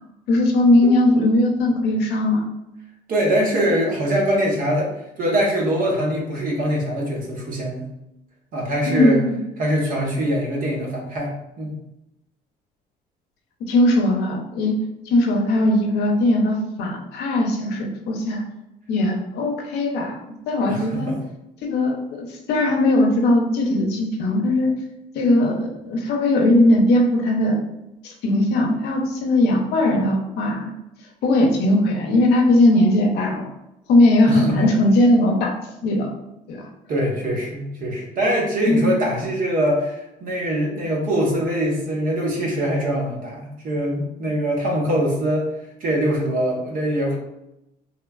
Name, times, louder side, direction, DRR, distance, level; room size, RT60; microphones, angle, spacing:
voice 1, 0.3-2.4 8.9-9.4 13.7-14.8 15.1-18.4 18.9-21.1 21.6-24.7 25.1-27.6 28.0-30.7 31.2-33.5 33.9-35.5 35.8-36.2 36.5-36.7 38.7-38.8, left 1 dB, 80° left, 1 dB, 0.6 m, -19 dB
voice 2, 3.1-4.9 5.2-7.9 8.5-9.2 9.6-11.8 20.7-21.2 34.3-34.7 36.9-45.5 45.8-47.2, equal, 55° right, -1 dB, 0.8 m, -23 dB
3.0 x 2.1 x 2.3 m, 0.88 s
cardioid pair, 110°, 17 cm